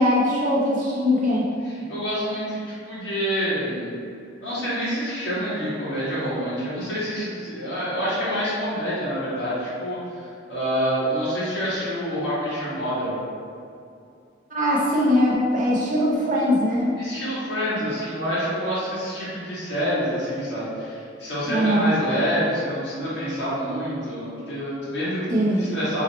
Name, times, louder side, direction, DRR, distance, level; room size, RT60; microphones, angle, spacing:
voice 1, 0.0-1.5 14.5-16.9 21.5-21.9 25.3-25.7, equal, 45° right, -5 dB, 0.7 m, -21 dB
voice 2, 1.6-3.9 4.4-13.1 16.9-25.3 25.5-26.0, equal, 65° left, -10 dB, 1.5 m, -27 dB
3.1 x 2.8 x 4.0 m, 2.5 s
head